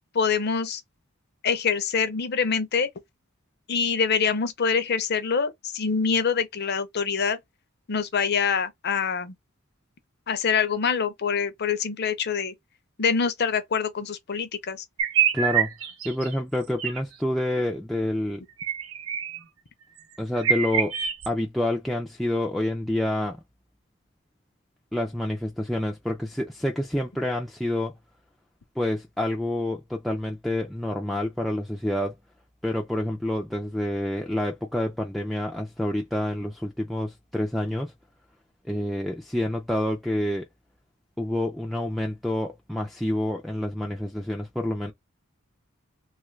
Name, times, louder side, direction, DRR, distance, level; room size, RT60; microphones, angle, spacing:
voice 1, 0.1-0.8 1.4-2.9 3.7-7.4 7.9-9.3 10.3-12.5 13.0-14.8, left 6 dB, 50° left, 0.6 m, -25 dB
sound 1, 15.0-16.3 16.8-17.0 18.6-19.4 20.0-20.1 20.4-21.3, right 7 dB, 75° right, 0.7 m, -25 dB
voice 2, 15.3-15.7 16.0-18.4 20.2-20.9 21.3-23.4 24.9-27.9 28.8-32.1 32.6-37.9 38.6-40.5 41.2-44.9, left 1 dB, ahead, 0.4 m, -28 dB
3.0 x 2.4 x 3.1 m
head